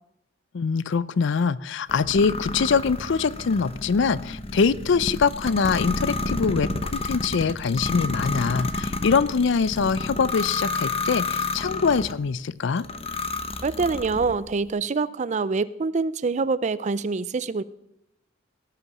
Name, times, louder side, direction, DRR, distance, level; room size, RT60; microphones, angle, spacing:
voice 1, 0.5-12.8, left 5 dB, 60° left, 19 dB, 0.4 m, -23 dB
sound 1, 1.9-12.2 12.8-14.4, left 3 dB, 30° left, 0.8 m, -30 dB
voice 2, 13.6-17.6, right 4 dB, 35° right, 17 dB, 0.4 m, -25 dB
17.5 x 6.9 x 6.0 m, 0.81 s
head